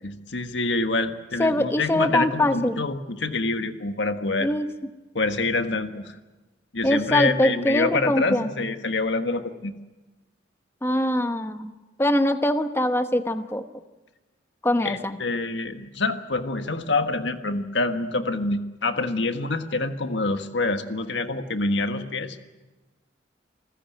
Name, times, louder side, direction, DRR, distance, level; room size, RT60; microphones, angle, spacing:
voice 1, 0.0-4.5 5.1-6.2 6.7-9.7 14.8-22.4, left 3 dB, 70° left, 7 dB, 1.5 m, -26 dB
voice 2, 1.4-2.8 4.4-4.7 6.8-8.5 10.8-11.7 12.0-13.6 14.6-15.2, left 1 dB, 15° left, 8 dB, 1.1 m, -23 dB
27.5 x 15.0 x 9.2 m, 1.2 s
head